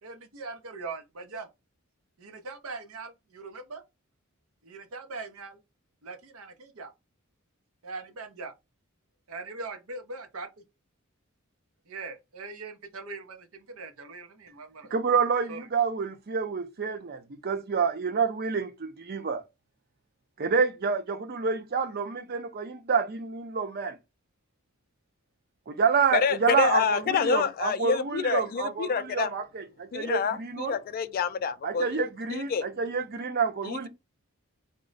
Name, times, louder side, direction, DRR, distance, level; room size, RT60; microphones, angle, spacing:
voice 1, 0.0-1.5 2.2-3.8 4.6-5.6 6.0-6.9 7.8-8.5 9.3-10.5 11.9-14.9 15.5-15.7, right 3 dB, 80° right, 0.8 m, -41 dB
voice 2, 14.9-19.4 20.4-24.0 25.7-30.7 31.6-33.9, right 5 dB, 50° right, 0.5 m, -28 dB
voice 3, 26.1-29.3 29.9-32.0 32.3-32.7 33.6-33.9, left 6 dB, 45° left, 0.3 m, -27 dB
3.7 x 2.1 x 3.8 m
head